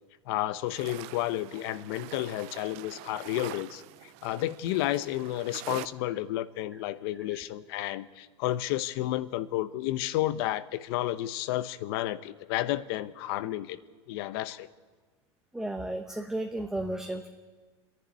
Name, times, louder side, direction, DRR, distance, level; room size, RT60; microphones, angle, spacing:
voice 1, 0.3-13.8 14.1-14.7, left 14 dB, 55° left, 15 dB, 0.9 m, -31 dB
sound 1, 0.5-5.9, right 17 dB, 45° right, 0.6 m, -45 dB
voice 2, 15.5-17.3, right 1 dB, 5° right, 4 dB, 0.9 m, -33 dB
28.0 x 10.5 x 9.5 m, 1.4 s
supercardioid pair, 150°, 15 cm